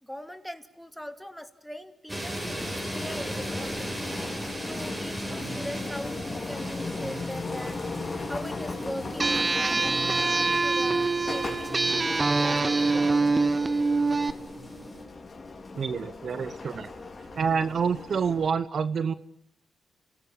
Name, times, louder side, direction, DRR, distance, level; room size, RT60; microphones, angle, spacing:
voice 1, 0.0-4.0 4.3-13.5, equal, ahead, 8 dB, 2.7 m, -41 dB
sound 1, 2.1-15.0, right 1 dB, 20° right, 6.4 m, -38 dB
sound 2, 2.4-18.5, left 3 dB, 40° left, 4.8 m, -37 dB
sound 3, 9.2-14.3, right 3 dB, 35° right, 1.2 m, -24 dB
voice 2, 15.7-16.9 17.3-19.1, right 6 dB, 60° right, 15 dB, 0.9 m, -27 dB
28.5 x 18.5 x 8.7 m, 0.75 s
supercardioid pair, 55°, 0 cm